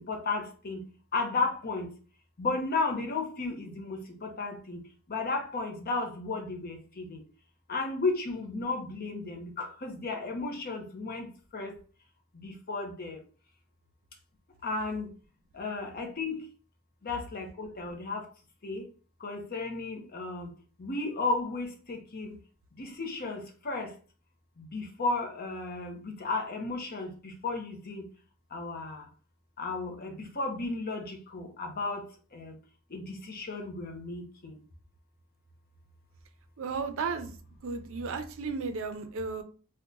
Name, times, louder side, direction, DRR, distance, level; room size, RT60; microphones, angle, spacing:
voice 1, 0.1-0.8 1.1-1.9 2.4-4.8 5.1-7.2 7.7-11.3 11.5-11.7 12.4-13.2 14.6-15.1 15.6-16.4 17.0-18.2 18.6-18.8 19.2-20.5 20.8-22.3 22.8-23.9 24.7-28.0 28.5-29.0 29.6-32.0 32.3-32.5 32.9-34.5, left 3 dB, 45° left, 4 dB, 0.7 m, -34 dB
voice 2, 36.6-37.3 37.6-39.4, right 4 dB, 65° right, 7 dB, 0.5 m, -34 dB
2.8 x 2.1 x 3.7 m, 0.39 s
head